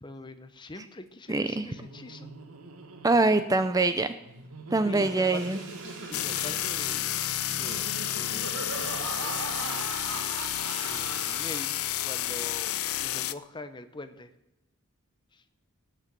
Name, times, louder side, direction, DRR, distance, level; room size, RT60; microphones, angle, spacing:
voice 1, 0.0-2.3 4.9-5.6 6.1-7.2 7.5-9.4 10.8-14.3 15.3-15.4, left 2 dB, 20° left, 10 dB, 0.8 m, -44 dB
voice 2, 1.3-1.7 3.0-4.1 4.7-5.6, right 3 dB, 15° right, 10 dB, 0.5 m, -24 dB
Laughter, 1.6-12.1, right 3 dB, 85° right, 1.4 m, -41 dB
Bathtub (filling or washing), 4.9-12.2, right 3 dB, 55° right, 3.4 m, -46 dB
sound 1, 6.1-13.3, left 13 dB, 80° left, 0.5 m, -31 dB
18.0 x 6.7 x 7.6 m, 0.92 s
head